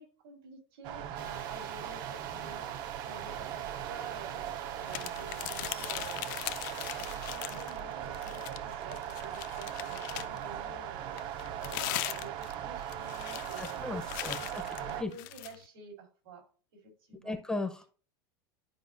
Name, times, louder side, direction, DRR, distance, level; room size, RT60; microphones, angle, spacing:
voice 1, 0.0-6.5 6.9-13.8 14.1-16.4 16.8-17.4, right 4 dB, 85° right, 3 dB, 3.7 m, -49 dB
sound 1, 0.8-15.0, right 10 dB, 40° right, 0.6 m, -39 dB
sound 2, 1.1-7.3, right 9 dB, 65° right, 1.2 m, -48 dB
sound 3, 4.9-7.8 8.1-10.5 11.2-15.6, left 18 dB, 55° left, 0.5 m, -40 dB
voice 2, 13.6-14.4 15.0-15.1 17.2-17.9, left 2 dB, 5° left, 6 dB, 0.6 m, -35 dB
12.0 x 4.9 x 2.5 m, 0.39 s
supercardioid pair, 155°, 12 cm